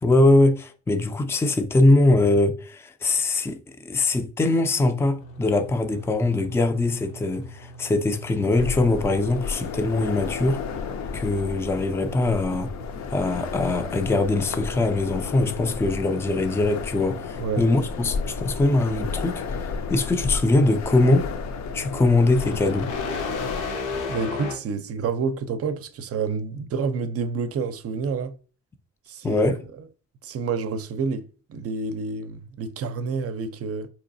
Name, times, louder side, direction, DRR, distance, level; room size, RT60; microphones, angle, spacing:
voice 1, 0.0-10.6 11.1-12.7 13.1-19.4 19.9-21.3 21.7-22.9 29.2-29.6, left 2 dB, 10° left, 0.4 m, -22 dB
sound 1, 5.2-24.6, left 3 dB, 90° left, 0.8 m, -39 dB
sound 2, 8.5-23.6, left 5 dB, 65° left, 0.5 m, -32 dB
voice 2, 24.1-28.3 29.1-29.5 30.2-33.9, right 5 dB, 50° right, 0.5 m, -28 dB
3.9 x 2.9 x 2.6 m
cardioid pair, 90°, 30 cm